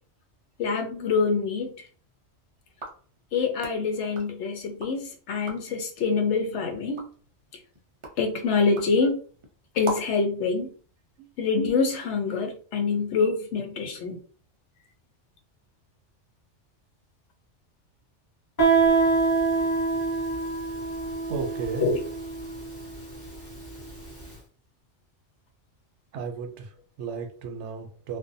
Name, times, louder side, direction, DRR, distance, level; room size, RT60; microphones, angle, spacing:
voice 1, 0.6-1.7 3.3-7.0 8.2-9.2 9.7-10.7 11.4-14.2 21.8-22.0, left 4 dB, 80° left, 0.9 m, -25 dB
sound 1, 2.7-5.0 5.3-5.8 6.3-10.3, right 2 dB, 45° right, 0.4 m, -41 dB
Guitar, 18.6-24.0, right 4 dB, 20° left, 1.1 m, -25 dB
voice 2, 21.3-21.9 26.1-28.2, right 5 dB, 80° right, 0.9 m, -34 dB
2.5 x 2.1 x 2.6 m
omnidirectional pair, 1.2 m